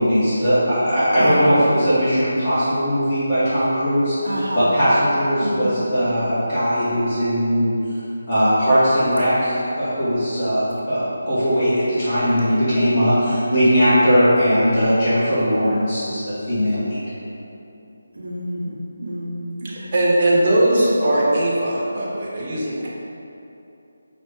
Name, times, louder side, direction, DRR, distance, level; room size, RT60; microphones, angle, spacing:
voice 1, 0.0-4.1 4.5-7.7 8.3-17.0, equal, 35° left, -14 dB, 1.4 m, -19 dB
voice 2, 1.2-1.5 4.2-4.7 5.4-5.8 18.1-19.9, right 1 dB, 90° right, -4 dB, 0.8 m, -28 dB
voice 3, 19.6-22.9, right 1 dB, 35° right, -6 dB, 0.8 m, -19 dB
5.5 x 2.4 x 3.6 m, 2.9 s
figure-of-eight pair, 155°, 0 cm